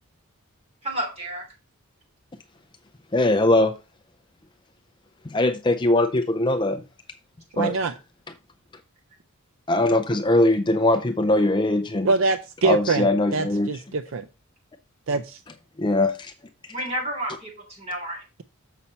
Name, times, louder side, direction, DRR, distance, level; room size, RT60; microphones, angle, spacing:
voice 1, 0.8-1.4 16.7-18.2, right 1 dB, 30° right, 3.3 m, -31 dB
voice 2, 3.1-3.7 5.2-6.8 7.6-7.8 9.7-12.1 12.6-13.7 15.8-16.3, left 2 dB, 20° left, 0.4 m, -21 dB
voice 3, 7.5-7.9 12.0-13.1 13.3-14.3 15.1-15.4, right 3 dB, 60° right, 0.5 m, -24 dB
7.3 x 5.5 x 4.2 m
head